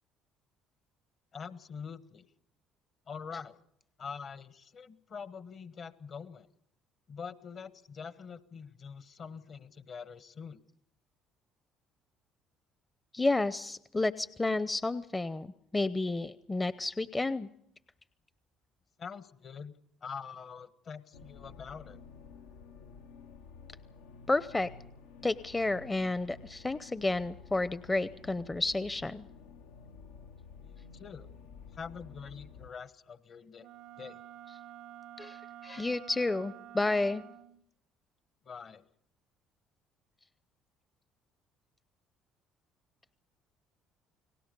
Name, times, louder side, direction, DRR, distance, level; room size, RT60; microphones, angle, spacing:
voice 1, 1.3-2.3 3.1-3.6 4.0-6.5 7.1-10.6 19.0-19.7 20.0-22.0 30.6-31.3 31.7-33.7 34.0-34.2 38.4-38.8, left 6 dB, 50° left, 13 dB, 1.4 m, -44 dB
voice 2, 13.1-17.5 24.3-24.7 25.2-29.2 35.2-37.2, left 2 dB, 20° left, 15 dB, 0.7 m, -31 dB
sound 1, 21.1-32.7, left 5 dB, 80° left, 1.0 m, -52 dB
Wind instrument woodwind instrument, 33.6-37.6, right 12 dB, 70° right, 0.8 m, -49 dB
29.5 x 19.0 x 5.4 m, 0.73 s
hypercardioid pair, 60°, 0 cm